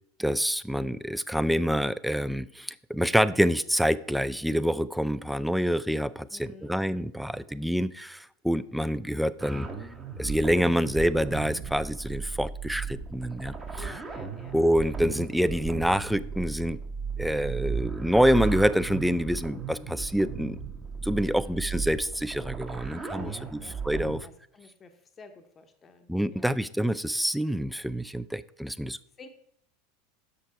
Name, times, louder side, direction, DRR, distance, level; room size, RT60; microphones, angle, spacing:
voice 1, 0.2-9.7 10.2-13.9 14.5-16.8 17.2-20.6 21.0-24.2 26.1-29.0, equal, ahead, 16 dB, 0.3 m, -27 dB
voice 2, 6.3-6.7 13.7-14.6 21.3-21.7 23.2-23.8 24.2-26.6 29.2-29.3, left 4 dB, 25° left, 6 dB, 0.8 m, -50 dB
sound 1, 9.4-24.2, right 5 dB, 25° right, 1.1 m, -36 dB
6.7 x 6.4 x 4.5 m, 0.70 s
figure-of-eight pair, 80°, 0 cm